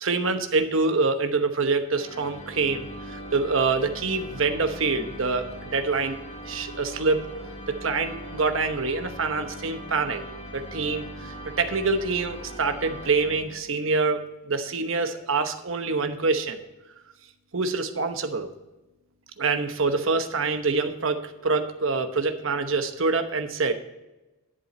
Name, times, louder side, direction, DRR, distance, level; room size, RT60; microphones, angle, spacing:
voice 1, 0.0-6.2 6.4-7.2 7.7-10.2 10.5-16.6 17.5-18.5 19.4-23.7, right 4 dB, 65° right, 7 dB, 1.0 m, -26 dB
sound 1, 1.9-13.9, equal, 30° left, 1.8 m, -40 dB
11.5 x 7.6 x 4.3 m, 1.0 s
head